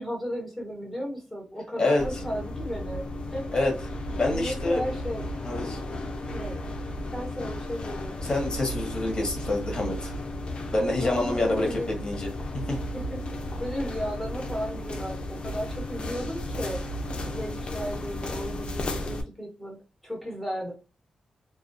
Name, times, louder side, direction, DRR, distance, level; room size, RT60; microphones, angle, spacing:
voice 1, 0.0-3.6 4.2-5.2 6.3-6.6 7.1-8.2 11.0-11.9 12.7-16.8 17.3-19.8 20.0-20.7, equal, 5° left, -2 dB, 1.2 m, -35 dB
voice 2, 1.8-2.2 3.5-3.7 4.2-4.8 5.4-5.8 8.2-10.1 10.7-12.3 12.7-12.8, left 2 dB, 35° left, 1 dB, 1.0 m, -27 dB
sound 1, 2.0-19.2, left 1 dB, 50° left, 0.5 m, -34 dB
2.3 x 2.3 x 2.6 m, 0.32 s
cardioid pair, 85°, 2 cm